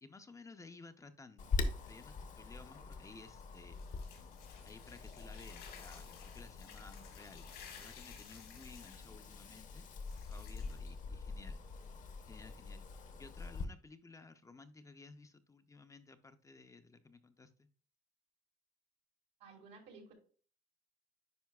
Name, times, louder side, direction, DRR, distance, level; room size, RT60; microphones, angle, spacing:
voice 1, 0.0-1.5 1.8-3.8 4.6-9.9 10.3-11.6 12.3-12.9 13.2-17.7, left 3 dB, 20° left, 9 dB, 0.5 m, -56 dB
Wind, 1.4-13.6, left 4 dB, 50° left, 0.8 m, -44 dB
sound 1, 2.5-11.6, left 7 dB, 80° left, 2.1 m, -57 dB
voice 2, 19.4-20.1, right 4 dB, 85° right, 1 dB, 2.0 m, -55 dB
9.4 x 5.0 x 2.3 m, 0.43 s
cardioid pair, 110°, 17 cm